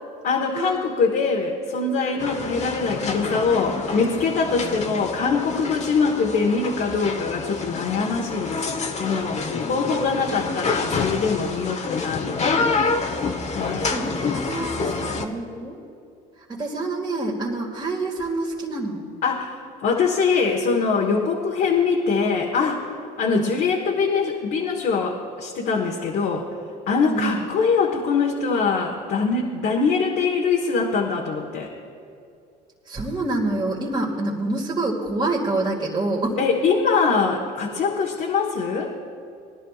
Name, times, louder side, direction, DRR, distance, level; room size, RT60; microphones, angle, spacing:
voice 1, 0.2-9.4 9.7-12.6 13.5-13.9 19.2-22.9 23.2-26.5 26.9-31.7 36.4-38.9, left 5 dB, 60° left, -2 dB, 1.4 m, -23 dB
sound 1, 2.2-15.3, left 4 dB, 35° left, 1.0 m, -28 dB
voice 2, 4.6-5.0 13.8-15.8 16.5-19.0 23.3-23.5 27.0-27.4 32.9-36.4, right 2 dB, 25° right, -3 dB, 2.0 m, -27 dB
20.5 x 11.0 x 2.4 m, 2.4 s
supercardioid pair, 85°, 19 cm